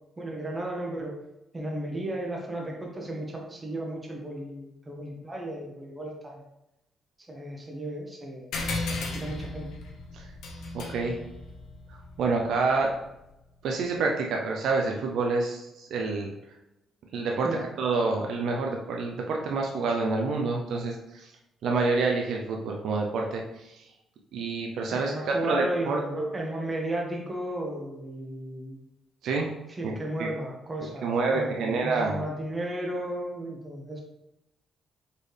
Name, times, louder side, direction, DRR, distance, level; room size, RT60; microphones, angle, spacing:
voice 1, 0.2-1.1 1.5-6.4 7.3-8.5 8.9-9.7 17.4-17.7 24.9-28.8 29.7-34.0, right 1 dB, 25° right, 0 dB, 1.0 m, -34 dB
sound 1, 8.5-13.4, left 2 dB, 80° left, 0.9 m, -36 dB
voice 2, 10.7-11.2 12.2-12.9 13.6-16.3 17.1-17.5 17.8-21.3 21.6-23.7 24.3-26.3 29.2-29.5 29.8-30.3 31.0-32.2, right 3 dB, 75° right, 1 dB, 0.6 m, -28 dB
4.4 x 3.2 x 3.3 m, 0.89 s
cardioid pair, 90°, 0 cm